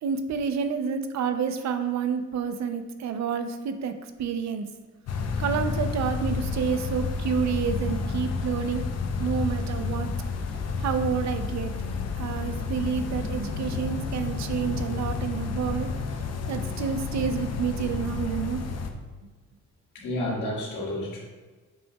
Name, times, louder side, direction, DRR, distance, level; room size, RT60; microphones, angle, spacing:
voice 1, 0.0-4.7 5.4-8.8 9.2-10.1 10.8-11.7 12.2-15.9 16.5-18.6, right 6 dB, 65° right, 8 dB, 0.7 m, -29 dB
sound 1, 5.1-18.9, left 4 dB, 55° left, 0.7 m, -30 dB
voice 2, 19.9-21.2, left 1 dB, 80° left, -4 dB, 1.9 m, -30 dB
7.6 x 5.4 x 2.3 m, 1.3 s
cardioid pair, 90°, 30 cm